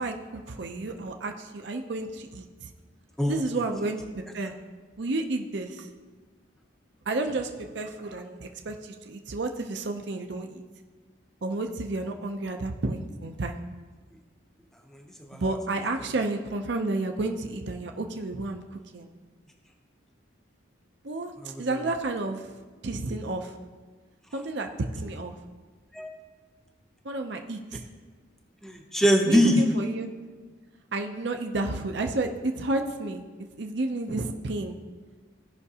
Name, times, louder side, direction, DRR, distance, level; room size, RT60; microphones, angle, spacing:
voice 1, 0.0-2.7 3.3-4.5 5.0-5.9 7.1-10.6 11.4-13.6 15.3-19.1 21.0-22.5 22.8-23.6 24.3-25.4 27.0-27.9 29.2-30.1 30.9-33.2 33.5-34.8, right 2 dB, 60° right, 4 dB, 0.6 m, -31 dB
voice 2, 14.9-15.4 21.4-21.6 25.9-26.1 28.6-29.6, equal, ahead, 2 dB, 0.6 m, -23 dB
16.5 x 5.8 x 2.8 m, 1.4 s
head